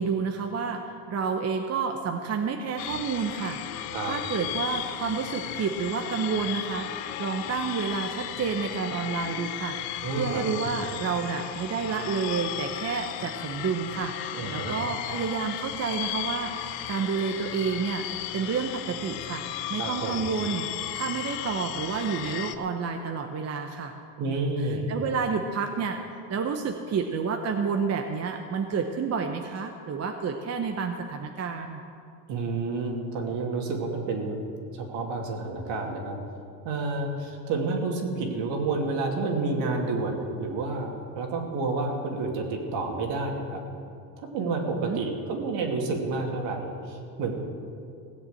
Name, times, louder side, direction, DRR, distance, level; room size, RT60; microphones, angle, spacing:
voice 1, 0.0-14.1 14.5-18.0 18.3-19.4 19.7-20.7 20.9-23.9 24.2-26.0 26.3-31.8 44.6-45.0, right 5 dB, 30° right, 4 dB, 0.9 m, -30 dB
sound 1, 2.8-22.5, left 12 dB, 75° left, 1.0 m, -35 dB
voice 2, 10.0-10.7 14.4-14.8 19.8-20.3 24.2-24.9 32.3-34.3 34.7-36.2 36.6-43.6 44.3-47.3, right 3 dB, 60° right, 2 dB, 2.7 m, -30 dB
17.0 x 7.2 x 7.9 m, 2.5 s
supercardioid pair, 110°, 50 cm